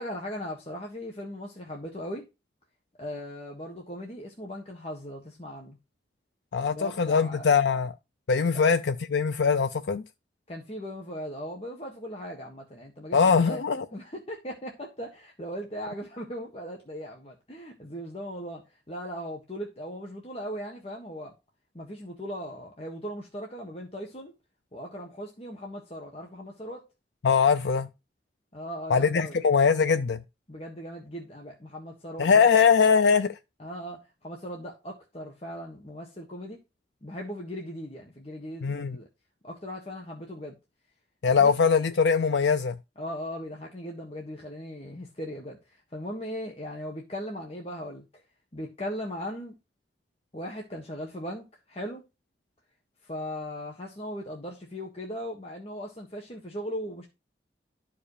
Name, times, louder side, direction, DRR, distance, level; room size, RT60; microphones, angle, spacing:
voice 1, 0.0-2.3 3.0-5.8 6.7-7.6 8.5-8.6 10.5-13.2 13.4-13.6 13.9-21.3 21.7-24.3 24.7-26.8 28.5-29.4 30.5-32.5 33.6-36.6 37.0-39.1 39.4-40.5 41.4-41.5 43.0-48.2 48.5-49.6 50.3-52.0 53.0-57.1, equal, 35° left, 1.6 m, -38 dB
voice 2, 6.5-7.9 8.3-10.0 13.1-13.9 27.2-27.9 28.9-30.2 32.2-33.4 38.6-39.0 41.2-42.8, left 5 dB, 80° left, 0.5 m, -22 dB
12.5 x 5.1 x 5.0 m
head